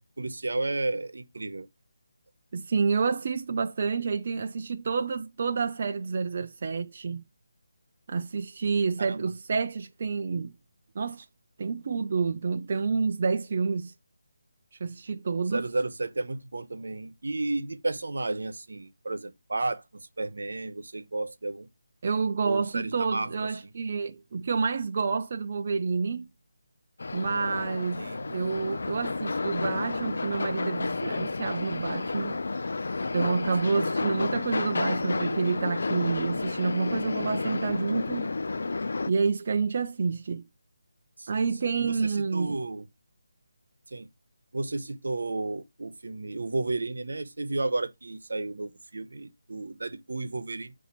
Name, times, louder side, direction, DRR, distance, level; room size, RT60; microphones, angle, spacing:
voice 1, 0.0-1.7 9.0-9.3 15.4-21.7 22.4-23.7 28.0-28.3 33.6-34.1 41.2-42.9 43.9-44.1 44.5-50.7, right 2 dB, 80° right, 0.9 m, -33 dB
voice 2, 2.5-7.2 8.1-10.5 11.0-11.3 11.6-13.9 14.8-15.7 22.0-26.3 27.1-32.4 33.1-38.3 39.1-40.4 41.3-42.5, right 5 dB, 40° right, 0.4 m, -29 dB
sound 1, 27.0-39.1, left 3 dB, 65° left, 0.4 m, -31 dB
8.1 x 2.7 x 4.4 m
figure-of-eight pair, 170°, 0 cm